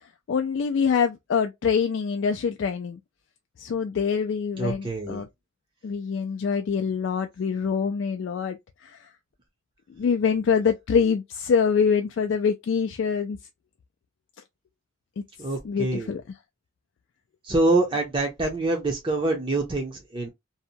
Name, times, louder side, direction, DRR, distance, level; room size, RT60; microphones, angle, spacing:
voice 1, 0.3-3.0 3.6-5.3 5.8-9.0 10.0-13.4 15.6-16.2, left 6 dB, 60° left, 0.3 m, -25 dB
voice 2, 4.6-5.2 15.4-16.1 17.4-20.3, right 2 dB, 25° right, 0.6 m, -25 dB
2.7 x 2.1 x 2.7 m
head